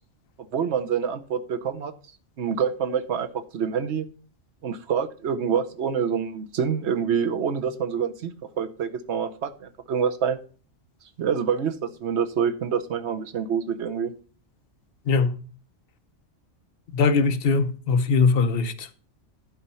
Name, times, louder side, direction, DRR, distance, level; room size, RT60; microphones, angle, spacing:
voice 1, 0.5-1.9 2.4-4.1 4.6-8.3 8.6-10.4 11.2-14.1, right 7 dB, 70° right, 1.1 m, -26 dB
voice 2, 16.9-18.9, left 4 dB, 55° left, 1.0 m, -21 dB
11.5 x 4.3 x 5.5 m
omnidirectional pair, 1.2 m